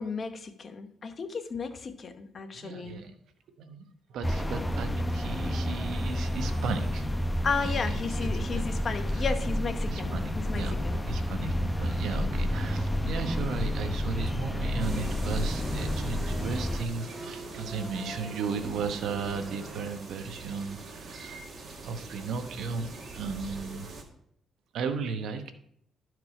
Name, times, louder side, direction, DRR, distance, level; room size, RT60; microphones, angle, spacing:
voice 1, 0.0-3.0 7.4-11.0, left 5 dB, 45° left, 9 dB, 0.9 m, -34 dB
voice 2, 2.5-3.1 3.6-7.1 7.6-8.0 8.3-8.6 9.1-9.2 9.9-10.8 11.0-21.5 21.8-24.0 24.7-25.5, right 5 dB, 75° right, 8 dB, 0.9 m, -35 dB
sound 1, 4.2-16.8, left 1 dB, 10° left, 0.7 m, -30 dB
sound 2, 14.1-19.9, right 1 dB, 25° right, 2.4 m, -47 dB
sound 3, 14.8-24.0, right 3 dB, 45° right, 1.8 m, -43 dB
12.0 x 4.7 x 4.8 m, 0.69 s
cardioid pair, 90°, 0 cm